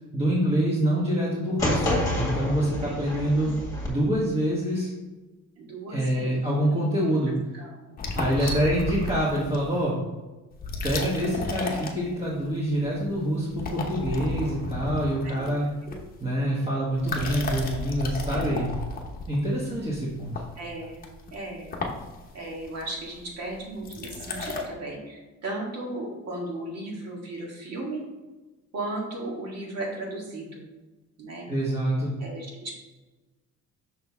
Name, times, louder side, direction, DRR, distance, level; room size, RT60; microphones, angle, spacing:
voice 1, 0.1-3.5 3.8-4.9 5.9-7.3 8.2-10.0 10.8-15.7 16.2-18.7 19.3-20.3 31.5-32.1, right 1 dB, 20° right, -8 dB, 1.4 m, -26 dB
sound 1, 1.6-3.9, left 1 dB, 10° left, 2.0 m, -28 dB
voice 2, 5.6-6.4 7.5-8.6 15.2-15.5 15.9-16.0 20.6-21.0 21.3-21.7 22.3-28.0 28.7-30.6 31.2-31.5 32.2-32.8, right 2 dB, 55° right, -1 dB, 2.0 m, -36 dB
sound 2, 8.0-9.8 10.5-12.5 12.8-13.2 13.4-16.4 16.9-24.7, left 2 dB, 30° left, 0.9 m, -34 dB
6.3 x 6.1 x 3.5 m, 1.2 s
cardioid pair, 165°, 30 cm